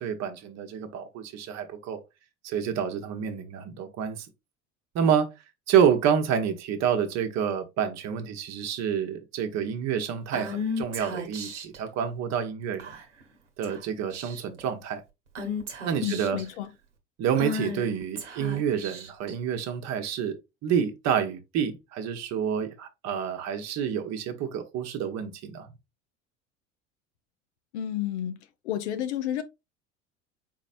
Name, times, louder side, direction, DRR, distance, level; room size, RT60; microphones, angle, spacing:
voice 1, 0.0-2.0 2.4-4.3 4.9-5.3 5.7-12.9 13.6-15.0 15.9-16.4 17.2-20.4 20.6-25.7, right 8 dB, 50° right, 1.0 m, -28 dB
Female speech woman speaking / Whispering, 10.3-11.8 12.8-13.2 13.6-13.8 14.1-14.6 15.4-16.4 17.4-19.3, left 2 dB, 85° right, 1.1 m, -34 dB
voice 2, 16.0-16.7 27.7-28.4 28.6-29.4, left 11 dB, 70° left, 0.7 m, -31 dB
4.6 x 4.1 x 2.5 m
figure-of-eight pair, 70°, 35 cm